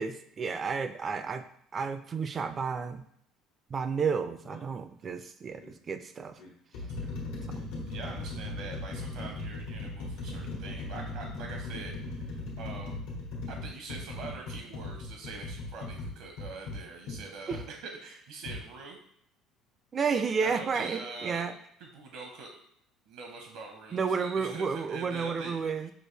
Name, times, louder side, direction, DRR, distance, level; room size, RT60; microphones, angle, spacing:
voice 1, 0.0-1.4 1.7-3.0 3.7-6.3 7.5-7.7 17.5-17.6 19.9-21.5 23.9-25.9, right 5 dB, 25° right, 10 dB, 0.3 m, -31 dB
sound 1, 4.4-4.7 5.6-5.7 6.4-17.7 18.5-18.6, left 2 dB, 90° left, 1.3 m, -38 dB
voice 2, 6.8-7.1 7.5-13.1 13.5-19.0 20.4-21.5 21.8-22.5 23.1-25.8, right 4 dB, 70° right, 2 dB, 0.9 m, -44 dB
6.2 x 2.6 x 3.2 m, 0.69 s
cardioid pair, 155°, 0 cm